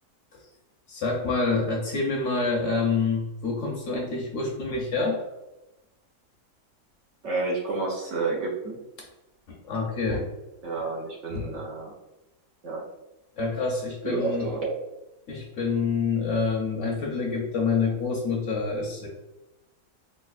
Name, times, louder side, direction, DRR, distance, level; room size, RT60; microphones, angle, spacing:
voice 1, 0.9-5.2 9.6-10.2 11.3-11.6 13.4-14.5 15.3-19.1, left 4 dB, 60° left, -2 dB, 0.8 m, -27 dB
voice 2, 7.2-8.8 10.6-11.9 12.6-12.8 14.0-14.7, right 3 dB, 60° right, -3 dB, 0.8 m, -30 dB
4.1 x 2.4 x 2.3 m, 0.98 s
omnidirectional pair, 1.7 m